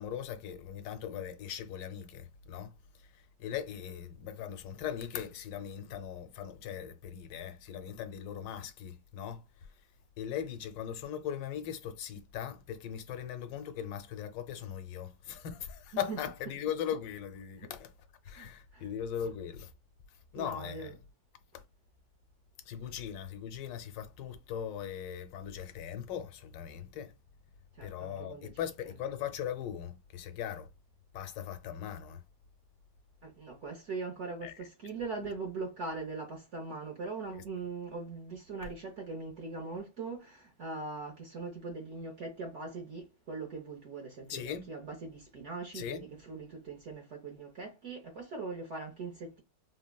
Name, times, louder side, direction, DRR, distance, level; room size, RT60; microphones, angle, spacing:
voice 1, 0.0-2.7 3.0-3.1 3.4-9.4 10.2-17.9 18.3-19.7 20.3-20.9 21.5-21.6 22.7-27.1 27.8-30.7 31.1-32.2 34.4-34.7 37.3-37.4 44.3-44.7 45.7-46.0, left 9 dB, 90° left, 1.3 m, -39 dB
voice 2, 18.3-18.9 20.3-20.9 27.8-28.5 33.2-49.4, right 3 dB, 60° right, 0.7 m, -41 dB
3.4 x 2.0 x 2.2 m
omnidirectional pair, 1.9 m